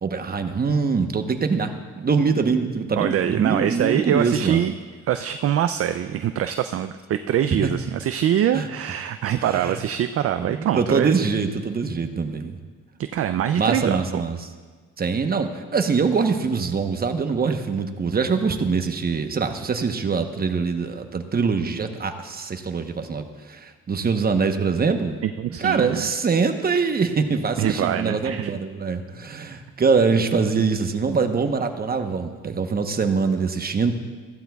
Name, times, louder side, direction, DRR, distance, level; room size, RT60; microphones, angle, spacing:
voice 1, 0.0-4.6 7.6-7.7 8.5-8.7 9.4-9.8 10.4-12.6 13.6-14.5 15.0-25.2 25.4-33.9, right 5 dB, 30° right, 6 dB, 1.0 m, -23 dB
voice 2, 3.0-4.7 5.1-11.2 13.1-14.2 25.2-26.1 27.6-28.5, right 10 dB, 50° right, 9 dB, 0.4 m, -24 dB
15.5 x 12.0 x 2.3 m, 1.5 s
cardioid pair, 90°, 30 cm